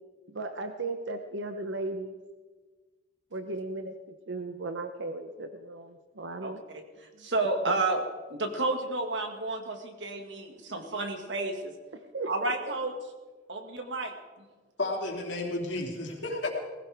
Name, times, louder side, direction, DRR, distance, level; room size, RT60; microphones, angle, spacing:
voice 1, 0.3-2.2 3.3-3.9 4.3-6.6 7.2-7.3 7.7-7.8 12.1-12.7, right 2 dB, 85° right, 7 dB, 0.9 m, -36 dB
voice 2, 6.4-6.8 7.2-8.0 8.3-11.7 12.3-12.9 13.5-14.1, right 2 dB, 70° right, 4 dB, 1.9 m, -31 dB
voice 3, 14.8-16.5, left 2 dB, 75° left, 0 dB, 3.1 m, -32 dB
19.0 x 16.5 x 3.5 m, 1.3 s
head